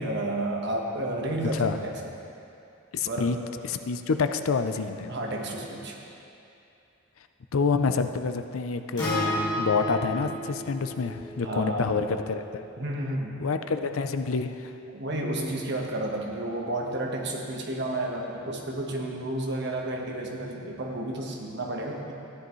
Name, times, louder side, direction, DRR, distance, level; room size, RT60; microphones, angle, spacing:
voice 1, 0.0-2.1 3.0-3.4 5.1-6.0 11.4-11.9 12.8-13.4 14.9-22.1, right 1 dB, 55° right, 0 dB, 1.3 m, -31 dB
voice 2, 1.4-1.8 2.9-3.4 3.6-5.1 7.5-12.6 13.4-14.7, left 4 dB, 85° left, 8 dB, 0.5 m, -28 dB
Acoustic guitar, 9.0-13.2, equal, 20° left, 2.1 m, -33 dB
14.0 x 10.0 x 3.1 m, 2.7 s
head